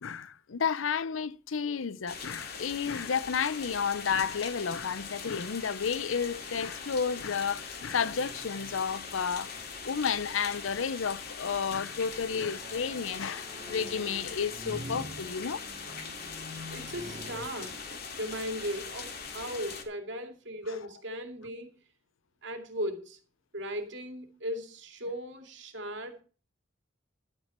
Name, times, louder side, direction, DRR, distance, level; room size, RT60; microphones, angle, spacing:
voice 1, 0.0-9.5 9.8-16.0, left 6 dB, 90° left, 0.6 m, -32 dB
sound 1, 2.1-19.8, left 5 dB, 55° left, 2.3 m, -41 dB
sound 2, 8.0-9.8 10.3-10.8 11.6-17.4, equal, 40° right, 2.0 m, -46 dB
voice 2, 16.7-17.7 18.2-21.7 22.4-23.2 23.5-26.2, equal, 65° right, 2.5 m, -37 dB
11.5 x 9.2 x 4.3 m
head